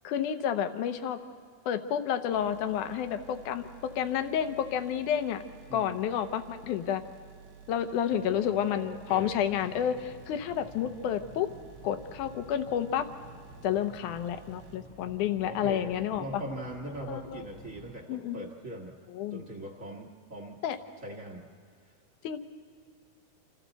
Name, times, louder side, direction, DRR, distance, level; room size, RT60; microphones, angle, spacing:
voice 1, 0.0-1.2 1.7-5.4 5.7-7.0 7.7-11.5 11.8-13.1 13.6-16.4 17.1-17.5 18.1-18.4 19.1-19.4 20.6-20.8 22.2-22.4, left 9 dB, 75° left, 9 dB, 2.3 m, -30 dB
sound 1, 2.3-14.8, right 7 dB, 85° right, 3.0 m, -52 dB
voice 2, 5.7-6.0 8.1-9.4 15.4-19.0 19.3-20.6 21.0-21.5, right 1 dB, 40° right, 0 dB, 1.2 m, -41 dB
sound 2, 9.1-18.0, equal, 25° left, 1.3 m, -52 dB
28.0 x 27.0 x 4.1 m, 2.1 s
omnidirectional pair, 3.9 m